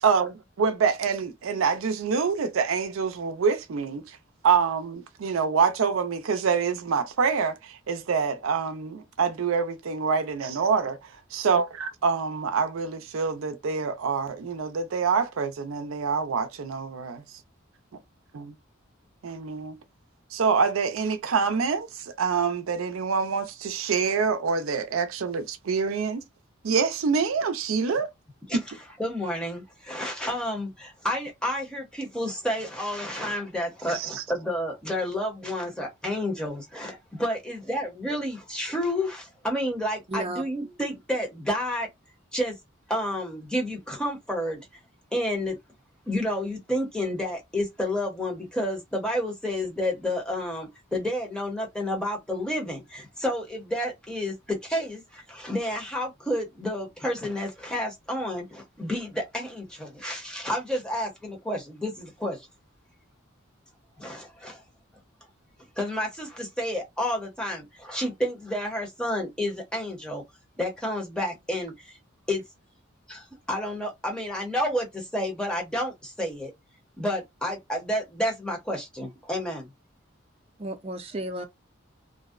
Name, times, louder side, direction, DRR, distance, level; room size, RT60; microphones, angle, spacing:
voice 1, 0.0-4.2 4.4-11.0 11.3-17.2 18.3-18.5 19.2-19.8 20.3-26.2 26.6-28.1 28.5-28.6 33.9-34.2, right 5 dB, 90° right, 0.4 m, -26 dB
voice 2, 29.0-41.9 42.3-42.5 42.9-44.6 45.1-45.6 46.1-62.5 64.0-64.6 65.8-70.2 70.6-72.0 72.3-72.4 73.1-76.5 77.0-79.7, left 1 dB, 5° left, 0.7 m, -30 dB
voice 3, 40.1-40.4 80.6-81.4, right 1 dB, 30° right, 0.5 m, -33 dB
2.6 x 2.0 x 2.3 m
head